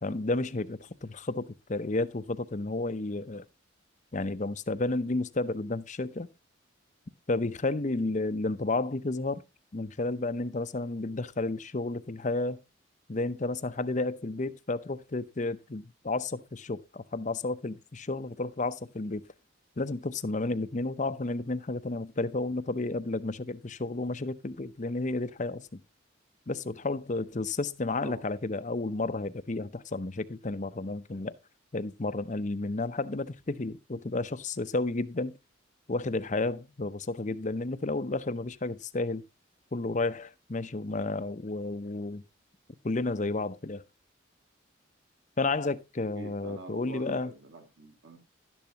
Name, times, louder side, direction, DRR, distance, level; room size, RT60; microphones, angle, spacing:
voice 1, 0.0-3.5 4.1-6.3 7.3-9.4 9.7-12.6 13.1-19.2 19.8-25.8 26.5-31.3 31.7-35.3 35.9-39.2 39.7-42.2 42.8-43.8 45.4-47.3, left 2 dB, 35° left, 0.7 m, -32 dB
voice 2, 46.2-48.2, right 1 dB, 65° right, 3.9 m, -45 dB
12.0 x 10.5 x 2.9 m
head